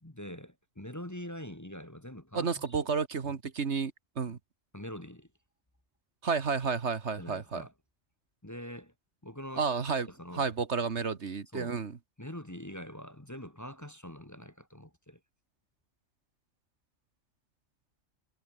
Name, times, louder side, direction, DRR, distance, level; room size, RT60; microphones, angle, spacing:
voice 1, 0.0-2.8 4.7-5.3 7.2-7.7 8.4-8.9 9.2-9.7 10.1-10.4 11.5-11.8 12.2-15.2, left 1 dB, 15° left, 1.7 m, -44 dB
voice 2, 2.3-4.4 6.2-7.6 9.6-11.9, right 5 dB, 60° right, 1.7 m, -31 dB
omnidirectional pair, 1.3 m